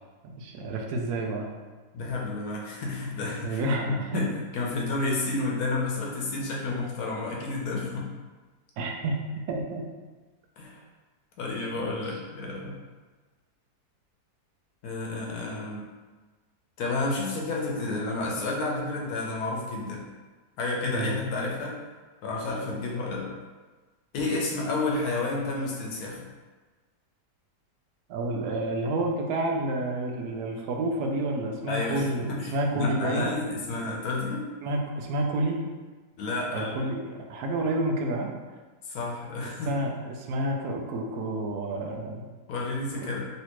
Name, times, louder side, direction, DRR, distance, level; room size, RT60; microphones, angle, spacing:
voice 1, 0.2-1.5 3.4-4.2 8.8-9.2 9.5-9.9 11.8-12.0 20.8-21.2 28.1-33.3 34.6-35.6 36.5-38.3 39.7-42.3 43.0-43.1, right 1 dB, 75° right, 1 dB, 1.0 m, -29 dB
voice 2, 1.9-8.1 10.6-10.8 11.4-12.7 14.8-15.8 16.8-20.0 20.6-21.8 22.2-23.3 24.1-26.3 31.7-34.5 36.2-36.7 38.8-39.8 42.5-43.2, left 2 dB, 70° left, -2 dB, 1.0 m, -31 dB
3.2 x 2.8 x 2.9 m, 1.3 s
omnidirectional pair, 1.8 m